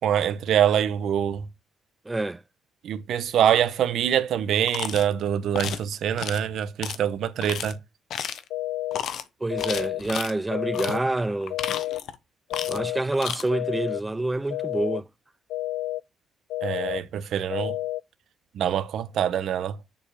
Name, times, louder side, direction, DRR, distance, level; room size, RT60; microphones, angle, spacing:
voice 1, 0.0-1.4 2.8-7.8 16.6-17.8 18.5-19.8, right 9 dB, 70° right, 1.1 m, -24 dB
voice 2, 2.1-2.4 9.4-11.6 12.7-15.1, right 2 dB, 15° right, 0.5 m, -27 dB
sound 1, 4.7-5.1 5.5-5.8 6.2-6.4 6.8-7.0 7.4-7.7 8.1-8.5 8.9-9.2 9.6-10.3 10.7-11.0 11.4-12.2 12.5-12.9 13.1-13.4, left 9 dB, 70° left, 0.9 m, -32 dB
sound 2, 8.5-9.0 9.5-10.0 10.5-11.0 11.5-12.0 12.5-13.0 13.5-14.0 14.5-15.0 15.5-16.0 16.5-17.0 17.5-18.0, left 16 dB, 90° left, 0.3 m, -30 dB
7.0 x 5.1 x 5.0 m
cardioid pair, 90°, 0 cm